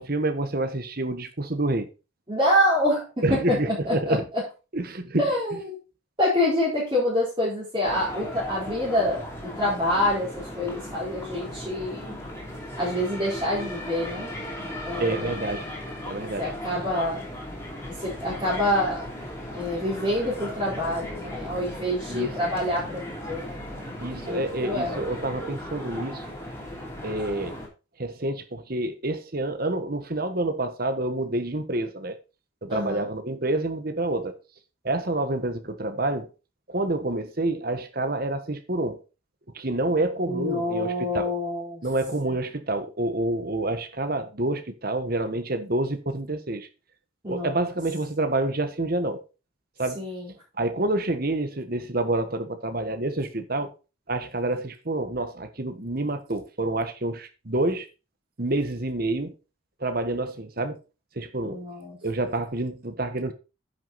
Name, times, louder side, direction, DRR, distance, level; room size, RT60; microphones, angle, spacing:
voice 1, 0.0-1.9 3.2-4.3 4.7-5.3 15.0-15.7 16.1-16.5 22.1-22.4 24.0-26.2 27.0-27.6 28.0-32.2 32.6-34.4 34.8-36.3 36.7-39.0 39.5-41.3 41.8-46.7 47.3-49.2 49.8-50.1 50.6-53.7 54.1-57.9 58.4-59.3 59.8-60.8 61.1-61.6 62.0-63.3, right 2 dB, 45° right, 1.3 m, -28 dB
voice 2, 2.3-4.4 5.2-5.8 6.2-12.1 12.8-14.3 14.6-15.4 16.4-17.2 18.0-19.1 19.5-24.0 24.2-25.0 32.7-33.1 40.2-41.8 47.2-47.7 50.0-50.3 61.4-62.0, left 1 dB, 25° right, 4.0 m, -27 dB
ambience Vienna Stephansplatz, 7.8-27.7, left 1 dB, 15° left, 3.0 m, -37 dB
10.0 x 6.4 x 4.1 m
head